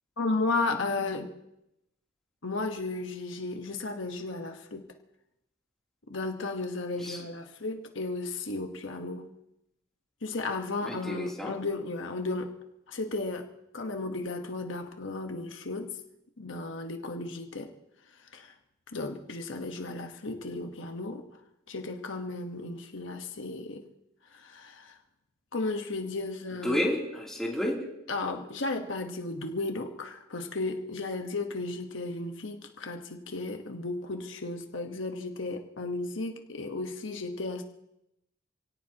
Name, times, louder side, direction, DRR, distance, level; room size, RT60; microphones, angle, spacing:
voice 1, 0.2-1.3 2.4-4.9 6.1-9.3 10.2-12.5 12.9-13.5 13.7-15.9 16.4-17.7 18.3-18.5 18.9-21.3 21.7-23.8 24.3-25.0 25.5-26.8 28.1-37.6, left 3 dB, 75° left, 4 dB, 1.3 m, -34 dB
voice 2, 10.8-11.6 26.6-27.9, left 1 dB, ahead, -3 dB, 3.0 m, -31 dB
28.5 x 17.5 x 2.9 m, 0.86 s
head